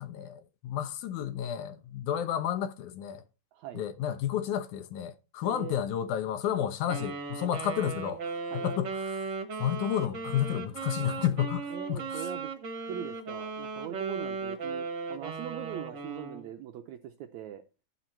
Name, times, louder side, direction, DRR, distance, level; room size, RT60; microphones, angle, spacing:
voice 1, 0.0-3.2 3.8-8.2 8.5-9.3 9.6-12.3, left 10 dB, 75° left, 1.9 m, -31 dB
voice 2, 3.5-3.8 5.4-5.8 8.5-8.7 11.7-12.5 12.9-17.6, right 10 dB, 90° right, 1.6 m, -41 dB
Wind instrument woodwind instrument, 6.9-16.5, right 4 dB, 60° right, 1.2 m, -37 dB
11.5 x 6.2 x 4.4 m
omnidirectional pair, 4.0 m